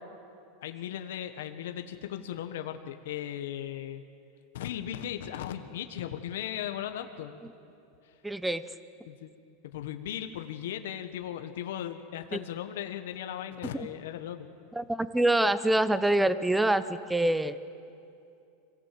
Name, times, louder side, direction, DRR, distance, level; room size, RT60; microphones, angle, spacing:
voice 1, 0.6-4.0 4.5-7.5 8.0-8.2 9.0-9.3 9.7-14.5, left 10 dB, 80° left, 7 dB, 1.3 m, -37 dB
voice 2, 8.2-8.6 12.3-12.4 14.8-17.6, right 1 dB, 5° right, 14 dB, 0.6 m, -25 dB
25.5 x 17.0 x 7.7 m, 2.6 s
supercardioid pair, 145°, 0 cm